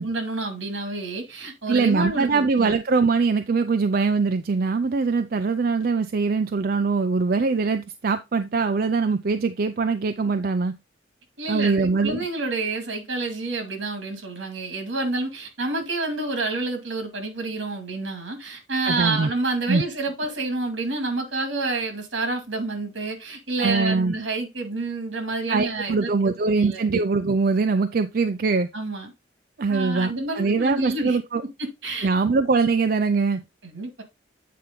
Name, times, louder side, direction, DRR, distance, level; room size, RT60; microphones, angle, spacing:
voice 1, 0.0-2.7 11.4-26.8 28.7-29.1 29.7-31.2 31.6-32.1 33.6-34.0, right 2 dB, 80° right, 2.2 m, -29 dB
voice 2, 1.7-10.7 11.5-12.2 18.8-19.3 19.7-19.8 23.6-24.1 25.5-28.7 29.6-31.4 32.0-33.4, right 4 dB, 50° right, 0.4 m, -22 dB
8.4 x 4.4 x 3.7 m
head